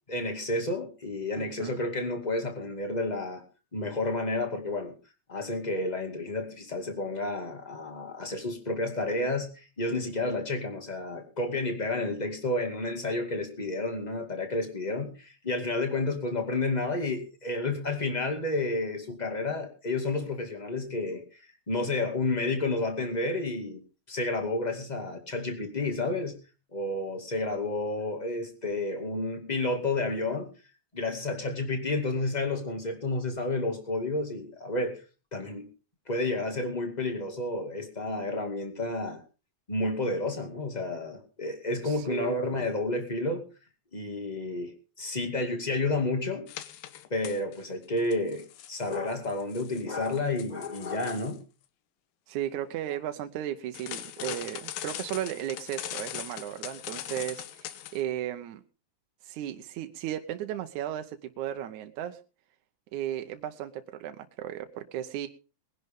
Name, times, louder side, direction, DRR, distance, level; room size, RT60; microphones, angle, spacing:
voice 1, 0.1-3.4 3.7-4.9 5.3-21.2 21.7-23.8 24.1-26.3 26.7-30.5 30.9-35.0 35.3-35.7 36.1-39.2 39.7-43.4 43.9-46.5 47.1-51.4 54.2-54.4, left 2 dB, 15° left, 5 dB, 1.5 m, -31 dB
voice 2, 1.4-1.7 41.9-42.4 52.3-58.6 59.2-62.2 62.9-65.3, right 11 dB, 70° right, 7 dB, 1.9 m, -35 dB
sound 1, 46.5-47.6 48.0-51.4 53.7-58.0, left 12 dB, 75° left, 2.5 m, -41 dB
21.0 x 11.0 x 3.7 m, 0.34 s
omnidirectional pair, 4.2 m